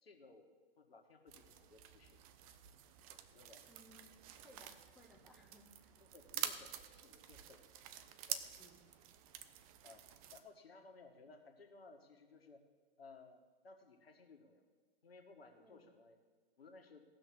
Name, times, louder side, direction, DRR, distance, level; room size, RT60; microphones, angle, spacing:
voice 1, 0.0-2.2 3.1-3.7 6.0-7.6 8.3-8.4 9.8-10.0 10.3-12.7 13.0-14.7 15.0-16.2 16.6-17.0, left 3 dB, 80° left, 4 dB, 1.8 m, -60 dB
sound 1, 1.3-10.4, right 10 dB, 35° right, 0.8 m, -48 dB
voice 2, 3.6-6.0 8.6-8.9 15.6-15.9, left 1 dB, ahead, -2 dB, 1.4 m, -64 dB
17.0 x 6.3 x 6.1 m, 1.4 s
hypercardioid pair, 120°, 30 cm